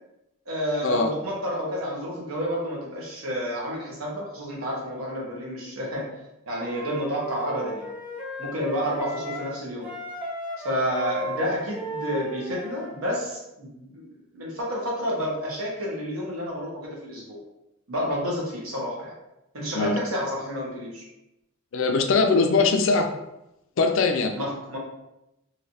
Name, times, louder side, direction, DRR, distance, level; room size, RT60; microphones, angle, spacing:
voice 1, 0.5-6.1 6.5-7.9 8.4-9.9 10.6-17.4 17.9-19.1 19.5-21.0 24.4-24.8, equal, 80° right, -3 dB, 1.1 m, -30 dB
Wind instrument woodwind instrument, 6.6-9.5 9.8-13.0, right 1 dB, 5° right, 0.5 m, -36 dB
voice 2, 21.7-23.1 23.8-24.3, left 4 dB, 65° left, 5 dB, 0.4 m, -21 dB
3.1 x 2.7 x 2.8 m, 0.89 s
head